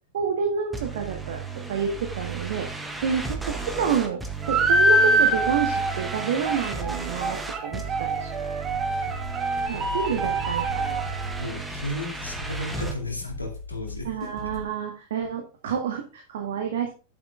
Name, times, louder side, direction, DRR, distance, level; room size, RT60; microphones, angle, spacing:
voice 1, 0.1-4.2 4.5-8.3 9.7-11.0 14.0-16.9, right 7 dB, 60° right, 3 dB, 1.9 m, -29 dB
sound 1, 0.7-13.0, right 4 dB, 5° right, 1.6 m, -35 dB
sound 2, 4.4-11.5, right 1 dB, 25° right, 2.1 m, -25 dB
sound 3, 8.6-14.7, left 2 dB, 15° left, 3.5 m, -39 dB
voice 2, 9.7-10.5 11.4-14.1, left 1 dB, 80° left, 2 dB, 2.4 m, -35 dB
10.0 x 7.9 x 3.6 m, 0.32 s
figure-of-eight pair, 90°, 0 cm